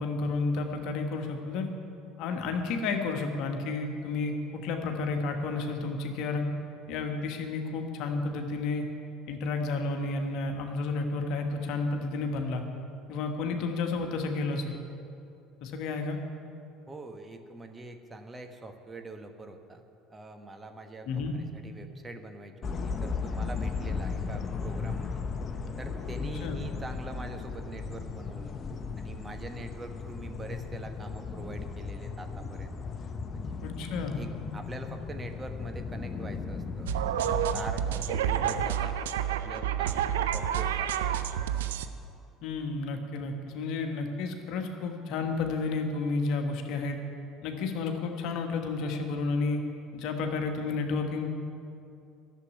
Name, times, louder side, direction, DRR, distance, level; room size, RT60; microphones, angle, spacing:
voice 1, 0.0-1.7 2.2-6.5 6.9-8.9 9.3-12.6 13.1-14.8 15.6-16.2 21.0-21.3 26.2-26.6 33.6-34.2 42.4-47.0 47.4-49.6 49.9-51.3, left 3 dB, 60° left, 4 dB, 1.4 m, -31 dB
voice 2, 16.9-19.8 20.1-25.2 25.8-28.6 29.0-32.8 33.3-33.6 34.1-36.9 37.3-39.0 39.3-40.9, right 2 dB, 25° right, 6 dB, 1.3 m, -44 dB
sound 1, 22.6-38.7, left 5 dB, 35° left, 1.0 m, -36 dB
sound 2, 36.9-41.9, right 10 dB, 80° right, 0.5 m, -29 dB
11.5 x 7.5 x 9.7 m, 2.6 s
hypercardioid pair, 65°, 0 cm